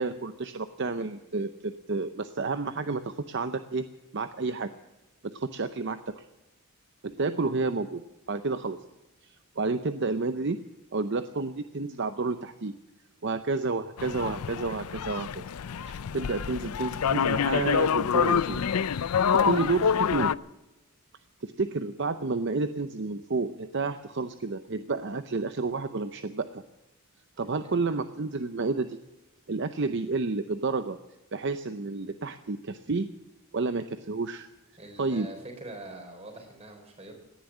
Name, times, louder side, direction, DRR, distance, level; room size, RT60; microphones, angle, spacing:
voice 1, 0.0-3.8 4.1-4.7 5.2-6.2 7.0-8.0 8.3-8.8 9.2-10.6 10.9-12.8 13.2-15.4 15.9-19.0 19.3-20.3 21.4-26.6 27.4-29.0 29.5-31.0 31.3-33.1 33.5-34.5 35.0-35.3, right 3 dB, 55° right, 10 dB, 0.7 m, -30 dB
sound 1, 14.0-20.3, left 7 dB, 90° left, 0.5 m, -27 dB
voice 2, 34.8-37.2, right 2 dB, 30° right, 4 dB, 4.1 m, -43 dB
18.0 x 10.5 x 7.4 m, 1.0 s
head